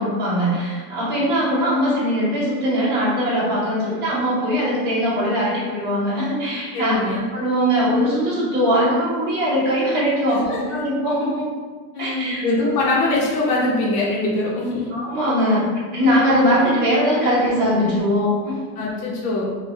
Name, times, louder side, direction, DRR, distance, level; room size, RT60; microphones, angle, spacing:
voice 1, 0.0-7.0 7.3-11.5 12.0-12.5 14.9-15.6 15.9-18.6, equal, 20° right, -10 dB, 1.1 m, -21 dB
voice 2, 6.7-7.2 10.3-10.6 11.9-14.9 16.3-16.4 18.8-19.5, left 2 dB, 85° left, -4 dB, 1.1 m, -22 dB
3.7 x 2.5 x 2.9 m, 1.4 s
supercardioid pair, 165°, 45 cm